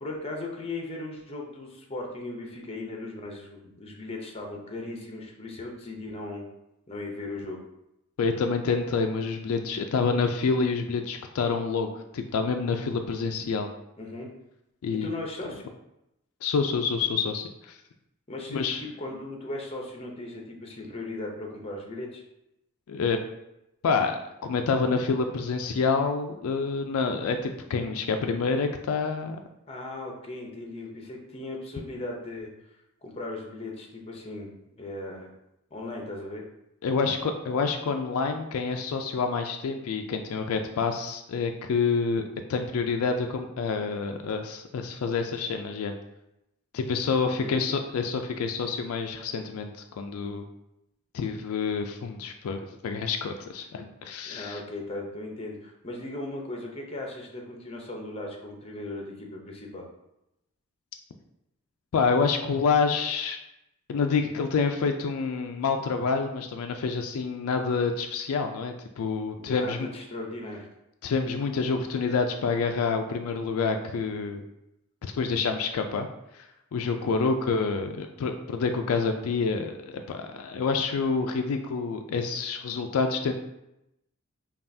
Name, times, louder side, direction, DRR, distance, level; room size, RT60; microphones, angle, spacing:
voice 1, 0.0-6.5 6.9-7.6 14.0-14.3 14.9-15.6 18.3-22.2 29.7-32.5 33.0-34.5 34.8-35.3 35.7-36.4 47.2-47.6 54.2-59.9 69.3-70.7 77.0-77.3, left 2 dB, 25° left, 0 dB, 0.6 m, -37 dB
voice 2, 8.2-13.7 14.8-15.1 16.4-17.8 18.5-18.8 22.9-23.2 23.8-29.4 36.8-42.2 42.5-45.9 46.7-49.7 50.0-50.4 51.1-54.6 61.9-63.4 63.9-69.8 71.0-74.4 75.0-76.1 76.3-83.3, left 5 dB, 75° left, 5 dB, 0.3 m, -27 dB
5.4 x 2.3 x 2.6 m, 0.86 s
head